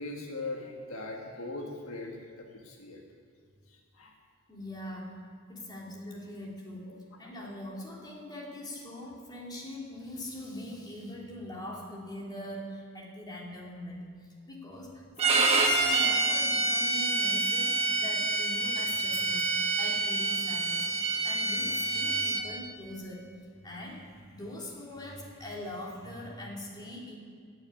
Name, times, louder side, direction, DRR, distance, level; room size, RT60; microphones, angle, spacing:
voice 1, 0.0-3.0 4.0-4.1 6.9-7.0, left 2 dB, 75° left, 1 dB, 1.6 m, -40 dB
voice 2, 4.5-5.2 5.5-27.2, left 1 dB, 20° left, -3 dB, 3.1 m, -42 dB
Bowed string instrument, 15.2-22.4, right 3 dB, 30° right, 1.5 m, -27 dB
14.5 x 7.2 x 9.6 m, 2.1 s
head